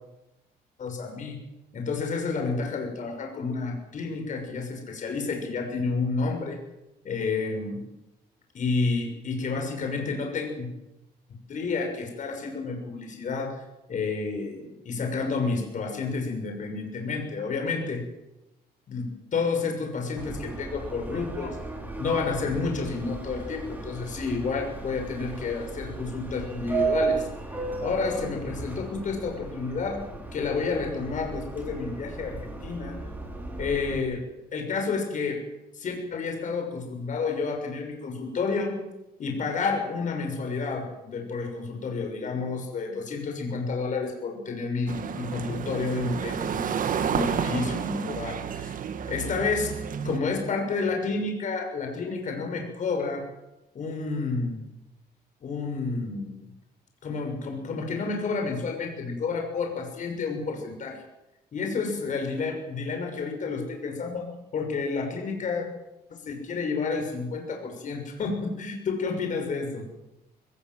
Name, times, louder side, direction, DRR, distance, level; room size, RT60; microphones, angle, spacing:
voice 1, 0.8-1.4 1.7-6.6 7.0-7.8 8.5-10.7 11.5-13.6 13.9-18.0 18.9-21.6 22.0-27.2 27.8-30.0 30.3-33.0 33.6-34.2 34.5-35.4 35.7-38.7 39.2-48.7 49.1-49.8 50.0-53.2 53.7-54.6 55.4-56.4 57.0-61.0 61.5-64.3 64.5-65.7 66.1-69.8, left 4 dB, 50° left, 3 dB, 6.3 m, -30 dB
Subway metro underground, 20.2-34.0, right 4 dB, 10° right, 7.9 m, -35 dB
sound 1, 44.9-50.2, right 7 dB, 55° right, 1.7 m, -30 dB
22.0 x 20.0 x 7.9 m, 0.92 s
cardioid pair, 125°, 17 cm